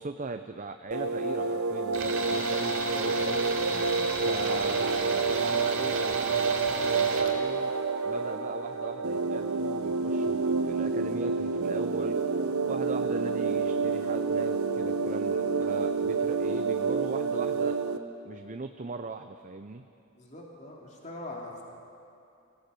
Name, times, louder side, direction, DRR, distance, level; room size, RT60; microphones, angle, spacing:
voice 1, 0.0-3.5 4.2-7.7 8.0-12.2 12.7-17.8 18.2-19.9, right 3 dB, 35° right, 7 dB, 0.7 m, -39 dB
sound 1, 0.9-18.0, right 4 dB, 90° right, 1.1 m, -28 dB
Tools, 1.9-7.3, right 4 dB, 65° right, 3.0 m, -34 dB
voice 2, 20.1-21.6, left 2 dB, 35° left, -2 dB, 3.0 m, -43 dB
24.5 x 16.0 x 8.4 m, 2.6 s
head